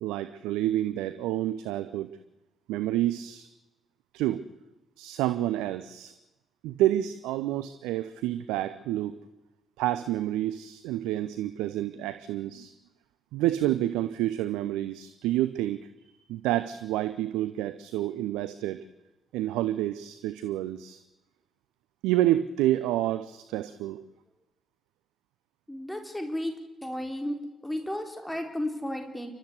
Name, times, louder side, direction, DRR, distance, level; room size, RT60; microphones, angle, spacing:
voice 1, 0.0-2.2 2.7-3.5 4.1-4.4 5.0-6.1 6.6-9.2 9.8-12.7 13.3-15.9 16.3-18.8 19.3-21.0 22.0-24.1, right 14 dB, 70° right, 12 dB, 0.8 m, -29 dB
voice 2, 25.7-26.5 26.8-27.4 27.6-29.3, left 1 dB, 5° left, 5 dB, 4.3 m, -33 dB
29.0 x 13.0 x 8.3 m, 1.0 s
figure-of-eight pair, 40°, 0 cm